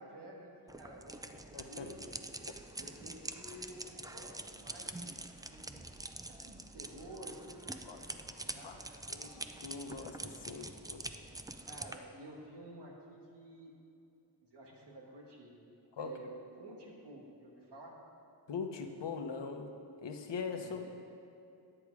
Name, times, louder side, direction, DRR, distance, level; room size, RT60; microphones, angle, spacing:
voice 1, 0.0-2.1 2.8-5.8 6.3-9.0 11.7-13.7 14.4-15.5 16.0-16.3 16.6-18.0 20.6-20.9, right 1 dB, 70° right, -2 dB, 1.9 m, -51 dB
sound 1, 0.7-12.0, right 2 dB, 10° right, 0.3 m, -45 dB
voice 2, 1.5-1.9 7.8-8.0 8.6-8.8 9.1-11.0 16.0-16.1 18.5-19.7 20.0-20.8, left 5 dB, 75° left, 5 dB, 0.9 m, -41 dB
10.0 x 8.7 x 4.8 m, 2.7 s
wide cardioid pair, 110°, 43 cm